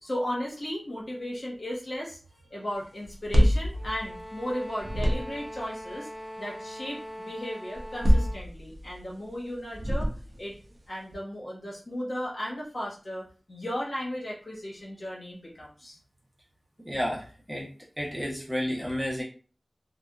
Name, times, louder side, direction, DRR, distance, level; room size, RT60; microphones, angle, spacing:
voice 1, 0.0-2.2 2.5-6.1 6.4-10.1 10.4-10.5 10.9-16.0, equal, 60° left, -5 dB, 1.2 m, -35 dB
sound 1, 3.0-4.5 4.8-5.6 7.7-9.0 9.7-10.5, equal, 45° right, 0.5 m, -25 dB
sound 2, 3.7-8.4, equal, 25° left, 0.6 m, -42 dB
voice 2, 16.8-17.7 18.0-19.2, equal, 15° right, -4 dB, 0.9 m, -31 dB
2.7 x 2.3 x 2.3 m, 0.37 s
wide cardioid pair, 55°, 0 cm